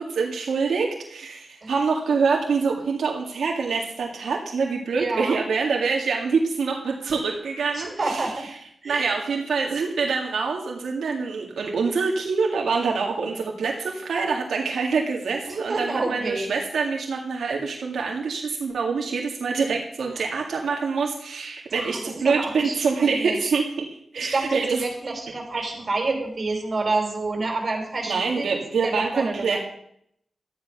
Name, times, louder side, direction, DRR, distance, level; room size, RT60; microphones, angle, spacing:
voice 1, 0.0-8.2 8.8-23.7 24.1-24.8 28.0-29.6, right 5 dB, 90° right, 0 dB, 2.0 m, -25 dB
voice 2, 5.0-5.4 7.7-8.5 8.8-9.1 15.4-16.5 20.2-20.3 21.7-23.5 24.1-28.5 28.8-29.6, right 3 dB, 40° right, 2 dB, 4.8 m, -29 dB
13.0 x 10.0 x 6.0 m, 0.70 s
wide cardioid pair, 125°, 0 cm